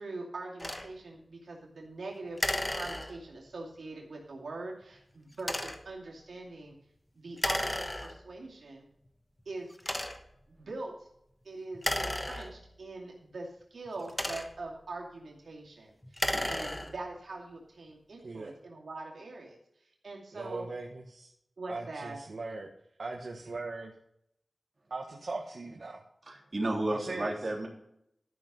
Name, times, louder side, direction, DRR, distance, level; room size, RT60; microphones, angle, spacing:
voice 1, 0.0-2.4 2.7-6.8 7.2-8.9 9.5-9.7 10.6-11.1 11.4-19.6 20.0-20.7 21.6-22.2, right 2 dB, 85° right, -1 dB, 2.5 m, -43 dB
sound 1, 0.6-0.9 2.4-3.4 5.4-5.9 7.4-8.4 9.1-9.2 9.8-10.4 11.7-12.9 13.9-14.8 16.0-17.1, left 1 dB, 20° left, 1.2 m, -34 dB
voice 2, 20.3-21.3 21.7-22.7 23.0-23.9 24.9-26.0 26.9-27.3, right 3 dB, 70° right, 0 dB, 1.4 m, -39 dB
voice 3, 26.3-27.7, right 1 dB, 45° right, -1 dB, 3.4 m, -32 dB
13.0 x 6.2 x 5.3 m, 0.76 s
wide cardioid pair, 60°, 0 cm